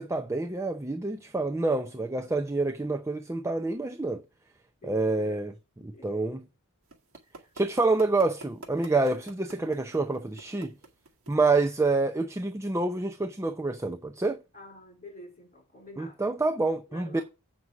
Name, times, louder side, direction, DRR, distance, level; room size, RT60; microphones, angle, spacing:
voice 1, 0.0-4.2 4.8-5.5 5.8-6.4 7.5-10.7 11.3-14.4 16.0-17.2, right 3 dB, 15° right, 0.6 m, -27 dB
voice 2, 2.0-2.3 4.8-5.5 5.8-6.4 7.2-7.5 14.5-16.2 16.9-17.2, left 1 dB, 35° left, 4.1 m, -49 dB
sound 1, 6.9-11.9, right 2 dB, 65° right, 2.1 m, -47 dB
7.8 x 6.0 x 5.9 m
head